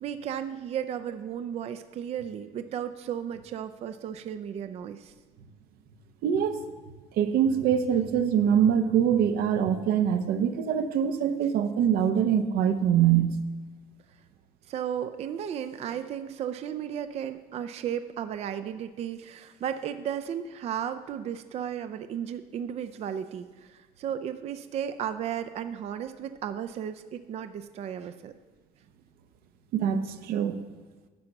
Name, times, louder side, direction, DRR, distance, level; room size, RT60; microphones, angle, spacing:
voice 1, 0.0-5.1 14.7-28.3, right 9 dB, 40° right, 10 dB, 0.4 m, -34 dB
voice 2, 6.2-6.6 7.2-13.3 29.7-30.5, right 8 dB, 75° right, 8 dB, 0.8 m, -24 dB
10.5 x 5.8 x 6.5 m, 1.3 s
cardioid pair, 150°, 16 cm